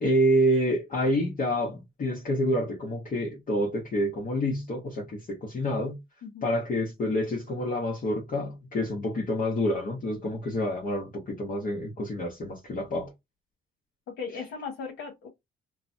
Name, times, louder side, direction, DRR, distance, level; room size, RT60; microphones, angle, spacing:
voice 1, 0.0-6.0 6.4-13.1, equal, 45° left, 1.0 m, -28 dB
voice 2, 6.2-6.5 14.1-15.3, left 5 dB, 75° left, 1.0 m, -37 dB
3.2 x 2.1 x 2.6 m
cardioid pair, 90°, 20 cm